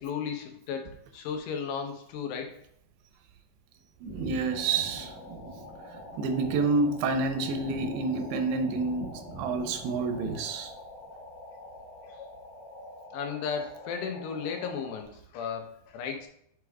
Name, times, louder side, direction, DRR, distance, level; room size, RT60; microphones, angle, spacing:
voice 1, 0.0-2.6 13.1-16.3, left 6 dB, 85° left, 2.9 m, -35 dB
sound 1, 4.0-10.8, right 2 dB, 20° left, 1.9 m, -45 dB
voice 2, 4.0-5.1 6.2-10.7, right 3 dB, 85° right, 2.6 m, -28 dB
sound 2, 4.5-15.0, left 2 dB, 55° left, 2.1 m, -46 dB
9.1 x 4.8 x 2.3 m
omnidirectional pair, 4.7 m